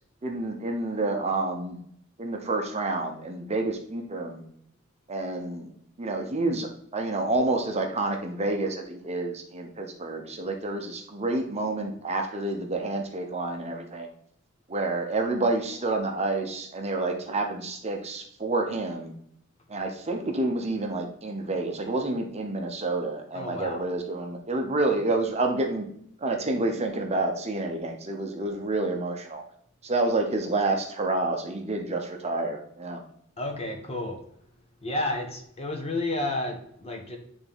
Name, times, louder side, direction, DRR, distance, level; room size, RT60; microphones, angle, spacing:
voice 1, 0.2-1.8 2.2-4.4 5.1-5.7 6.0-14.1 14.7-19.1 19.7-25.9 26.2-29.4 29.8-33.0, right 2 dB, 30° right, 3 dB, 0.8 m, -29 dB
voice 2, 23.3-23.8 33.4-34.2 34.8-37.2, left 2 dB, 30° left, 3 dB, 1.1 m, -31 dB
9.4 x 3.6 x 3.5 m, 0.68 s
head